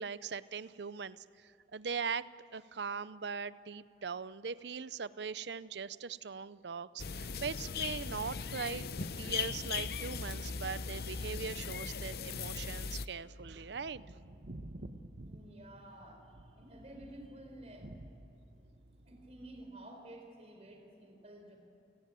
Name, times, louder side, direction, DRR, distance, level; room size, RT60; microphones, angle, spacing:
voice 1, 0.0-8.9 9.2-14.0, right 5 dB, 80° right, 16 dB, 0.6 m, -40 dB
sound 1, 7.0-13.1, left 5 dB, 60° left, 0.7 m, -38 dB
sound 2, 13.2-19.6, right 1 dB, 65° right, 1.2 m, -51 dB
voice 2, 15.2-17.9 19.0-21.6, right 1 dB, 35° right, 3 dB, 4.3 m, -52 dB
30.0 x 18.0 x 9.0 m, 2.7 s
head